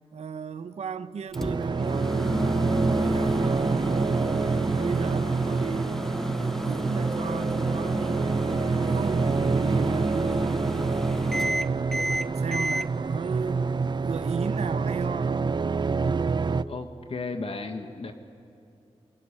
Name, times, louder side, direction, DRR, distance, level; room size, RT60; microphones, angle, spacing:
voice 1, 0.1-3.9 4.3-6.1 6.4-9.3 9.6-10.5 11.3-13.7 14.0-15.6, right 6 dB, 90° right, 13 dB, 0.8 m, -36 dB
Microwave oven, 1.3-12.9, equal, 5° left, 0.5 m, -31 dB
sound 1, 1.3-16.6, right 4 dB, 45° right, 0.6 m, -27 dB
Keyboard (musical), 7.0-9.8, right 2 dB, 25° right, 1.0 m, -43 dB
voice 2, 16.7-18.1, left 3 dB, 60° left, 7 dB, 1.5 m, -34 dB
23.5 x 23.5 x 8.7 m, 2.6 s
wide cardioid pair, 75°, 11 cm